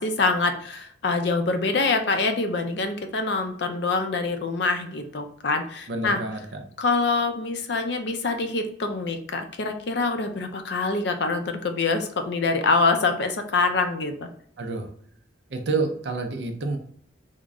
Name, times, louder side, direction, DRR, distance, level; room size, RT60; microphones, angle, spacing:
voice 1, 0.0-6.2 6.8-14.3, left 3 dB, 65° left, 6 dB, 0.5 m, -25 dB
voice 2, 5.9-6.4 14.6-14.9 15.5-16.8, right 3 dB, 65° right, 5 dB, 0.5 m, -28 dB
3.7 x 2.1 x 3.5 m, 0.62 s
head